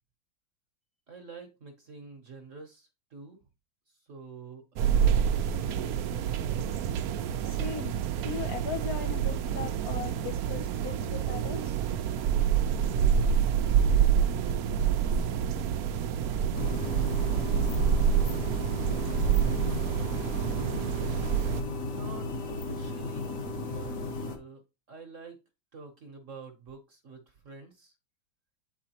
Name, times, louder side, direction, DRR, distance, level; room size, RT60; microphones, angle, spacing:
voice 1, 1.1-3.4 3.9-6.0 21.9-23.3 23.6-24.0 24.2-25.4 25.7-27.9, right 4 dB, 50° right, 1.0 m, -47 dB
sound 1, 4.8-21.6, right 8 dB, 90° right, 0.8 m, -27 dB
voice 2, 7.4-11.8, left 9 dB, 70° left, 0.9 m, -39 dB
sound 2, 16.5-24.4, left 2 dB, 50° left, 1.2 m, -35 dB
8.2 x 4.8 x 2.9 m
omnidirectional pair, 2.2 m